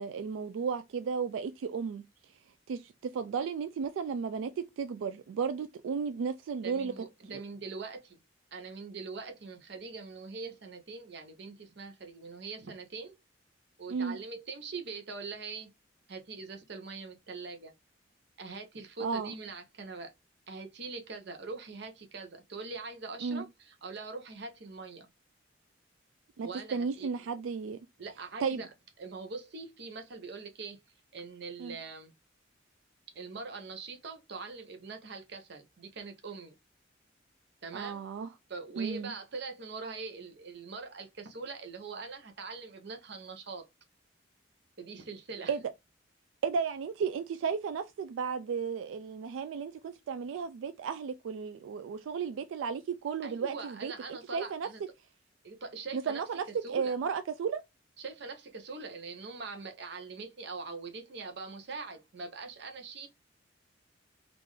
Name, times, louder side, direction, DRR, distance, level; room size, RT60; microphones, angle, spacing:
voice 1, 0.0-2.0 2.7-4.5 4.8-6.9 13.9-14.2 19.0-19.3 23.2-23.5 26.4-27.8 28.4-28.6 31.6-31.8 37.7-38.3 38.8-39.1 45.5-45.6 46.4-54.7 55.9-57.6, right 6 dB, 90° right, 0.3 m, -34 dB
voice 2, 6.6-8.2 8.5-13.1 13.8-15.7 16.1-17.7 18.4-20.1 20.5-25.1 26.4-27.1 28.0-28.7 29.0-30.8 31.1-32.1 33.1-36.6 37.6-38.0 38.5-43.7 44.8-45.5 53.2-54.8 55.4-56.2 56.6-56.9 58.0-63.1, right 4 dB, 60° right, 0.7 m, -42 dB
3.7 x 2.5 x 3.0 m
head